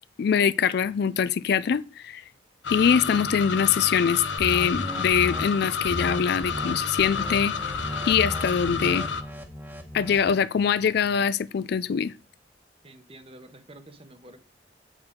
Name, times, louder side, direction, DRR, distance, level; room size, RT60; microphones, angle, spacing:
voice 1, 0.2-2.2 2.7-7.5 8.1-9.1 9.9-12.1, left 7 dB, 60° left, 0.3 m, -23 dB
sound 1, 2.6-9.2, left 5 dB, 90° left, 0.8 m, -30 dB
sound 2, 4.4-5.4 5.9-6.2 6.4-6.7 7.0-10.3, equal, 10° right, 1.1 m, -36 dB
voice 2, 12.8-14.4, right 1 dB, 30° right, 1.0 m, -48 dB
7.7 x 6.3 x 3.7 m
head